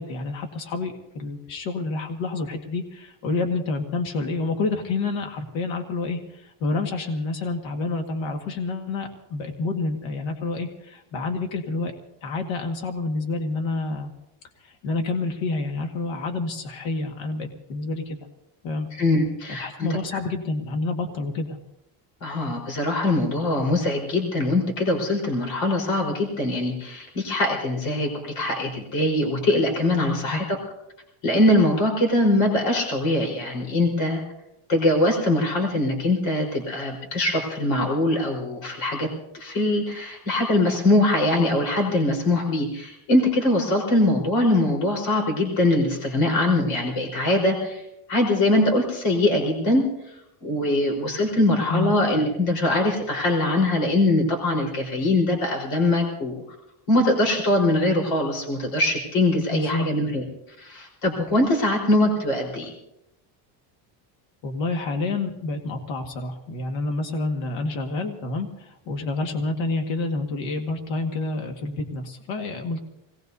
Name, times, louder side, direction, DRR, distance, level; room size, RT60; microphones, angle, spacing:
voice 1, 0.0-12.0 12.2-14.1 14.6-18.2 18.6-18.9 19.5-21.6 30.1-30.4 51.7-51.9 59.5-59.9 64.4-72.8, left 3 dB, 90° left, 4 dB, 1.9 m, -28 dB
voice 2, 18.9-19.9 22.2-30.4 31.2-34.2 34.7-39.1 39.3-47.8 48.1-49.8 50.4-56.4 56.9-60.2 60.6-62.7, left 1 dB, 50° left, 0 dB, 4.4 m, -22 dB
26.5 x 19.0 x 2.7 m, 0.85 s
cardioid pair, 175°, 44 cm